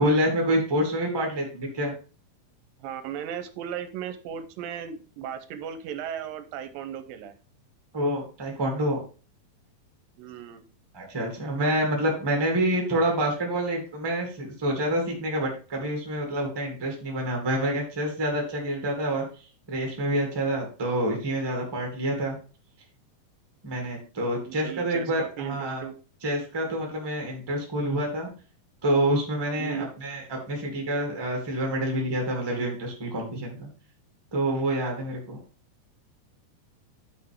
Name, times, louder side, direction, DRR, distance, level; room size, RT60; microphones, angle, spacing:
voice 1, 0.0-1.9 7.9-9.0 10.9-22.4 23.6-25.8 26.2-28.3 28.8-33.7 34.3-35.4, right 1 dB, 10° right, 1 dB, 1.1 m, -27 dB
voice 2, 2.8-7.4 10.2-10.6 24.5-26.0 29.6-29.9, right 9 dB, 85° right, 11 dB, 2.3 m, -36 dB
8.8 x 5.9 x 3.6 m, 0.36 s
omnidirectional pair, 4.2 m